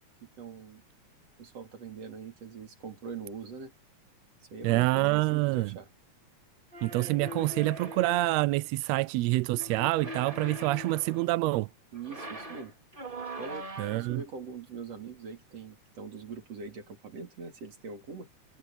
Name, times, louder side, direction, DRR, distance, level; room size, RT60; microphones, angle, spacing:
voice 1, 0.2-0.8 1.4-3.7 4.5-5.9 11.9-12.7 13.4-18.3, right 5 dB, 55° right, 4.3 m, -42 dB
voice 2, 4.6-5.7 6.8-11.7 13.8-14.2, right 19 dB, 80° right, 1.6 m, -27 dB
sound 1, 6.7-8.6 9.5-11.3 11.9-14.2, equal, 20° right, 2.5 m, -42 dB
omnidirectional pair, 3.4 m